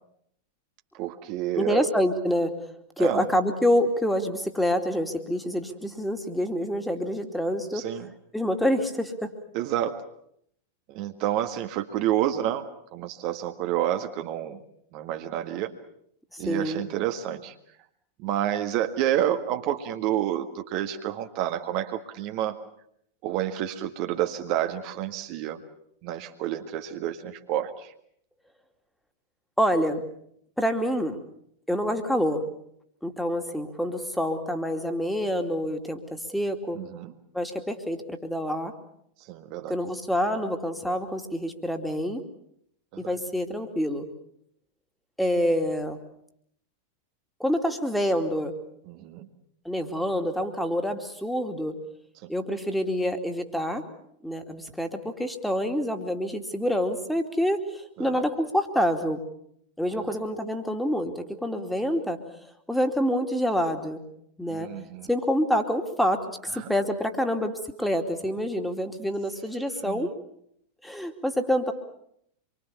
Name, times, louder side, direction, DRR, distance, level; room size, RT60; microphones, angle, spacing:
voice 1, 0.9-1.9 3.0-3.2 7.7-8.1 9.5-10.0 10.9-12.6 12.9-14.6 14.9-15.7 16.4-17.5 18.2-22.6 23.2-25.6 26.0-27.9 36.7-37.1 39.2-39.8 42.9-43.2 48.9-49.3 52.2-52.3 58.0-58.2 59.9-60.2 64.5-65.1 66.5-66.7 69.8-70.1, right 11 dB, 45° right, 6 dB, 1.8 m, -29 dB
voice 2, 1.6-2.7 3.0-7.9 8.3-9.4 16.3-16.8 29.6-30.0 30.6-31.2 31.7-32.5 33.0-36.8 37.3-38.7 39.7-42.2 43.0-44.1 45.2-46.0 47.4-48.5 49.6-51.8 52.3-53.8 54.2-59.2 59.8-62.2 62.7-64.0 64.4-64.7 65.1-70.1 70.8-71.7, equal, ahead, 5 dB, 2.8 m, -27 dB
26.5 x 24.0 x 7.1 m, 0.72 s
figure-of-eight pair, 90°, 0 cm